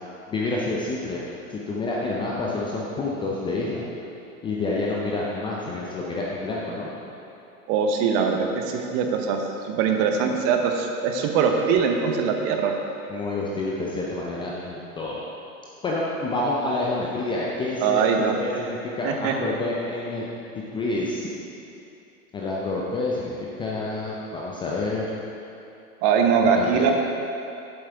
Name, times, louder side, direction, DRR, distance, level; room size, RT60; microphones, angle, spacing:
voice 1, 0.3-1.2 1.5-3.9 4.4-6.9 13.1-15.2 15.8-20.2 20.7-21.3 22.3-23.3 23.6-25.1 26.4-26.9, left 2 dB, 10° left, -4 dB, 0.4 m, -28 dB
voice 2, 7.7-9.4 9.6-12.7 17.8-18.3 19.0-19.3 26.0-26.9, right 6 dB, 35° right, 3 dB, 0.9 m, -22 dB
8.4 x 7.4 x 3.5 m, 2.8 s
hypercardioid pair, 105°, 44 cm